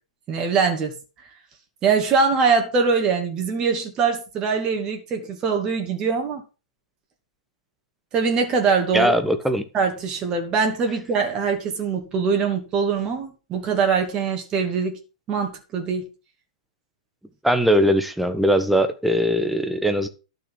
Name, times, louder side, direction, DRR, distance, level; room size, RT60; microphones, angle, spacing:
voice 1, 0.3-0.9 1.8-6.4 8.1-9.1 9.7-15.0 15.3-16.0, right 5 dB, 25° right, 2.6 m, -22 dB
voice 2, 8.9-9.7 17.4-20.1, equal, ahead, 1.3 m, -20 dB
11.5 x 6.6 x 6.2 m
figure-of-eight pair, 110°, 3 cm